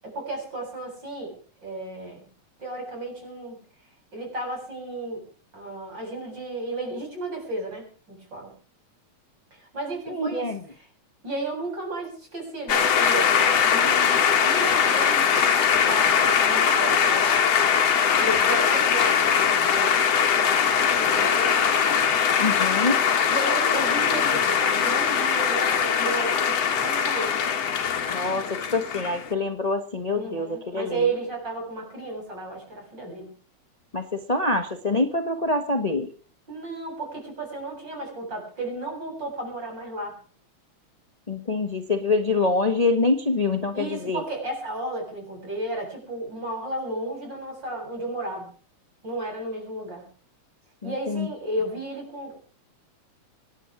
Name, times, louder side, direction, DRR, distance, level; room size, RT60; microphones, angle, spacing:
voice 1, 0.0-2.3 2.6-3.6 4.1-5.2 5.5-8.5 9.5-10.9 11.2-17.5 18.2-20.0 21.0-21.7 23.3-27.4 30.1-33.3 36.5-40.2 43.7-48.5 49.0-50.1 50.8-52.4, right 2 dB, 35° right, 1 dB, 8.6 m, -33 dB
voice 2, 10.1-10.6 22.4-23.0 28.1-31.0 33.9-36.1 41.3-44.2 50.8-51.3, left 3 dB, 40° left, 6 dB, 0.5 m, -25 dB
sound 1, 12.7-29.3, left 7 dB, 60° left, 2.7 m, -21 dB
26.5 x 10.5 x 4.9 m, 0.39 s
omnidirectional pair, 3.4 m